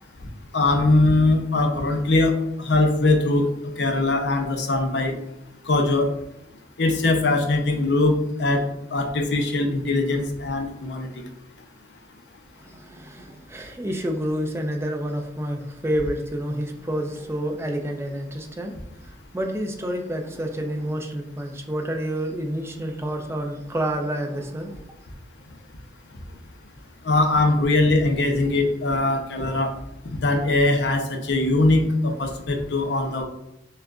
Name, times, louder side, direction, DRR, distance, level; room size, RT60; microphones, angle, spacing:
voice 1, 0.5-3.5 3.8-5.1 5.6-6.1 6.8-8.6 8.9-11.3 27.0-29.7 30.0-33.2, left 2 dB, 65° left, 4 dB, 0.6 m, -21 dB
voice 2, 12.6-24.8, equal, 15° right, 2 dB, 0.5 m, -29 dB
6.3 x 2.4 x 2.3 m, 0.84 s
head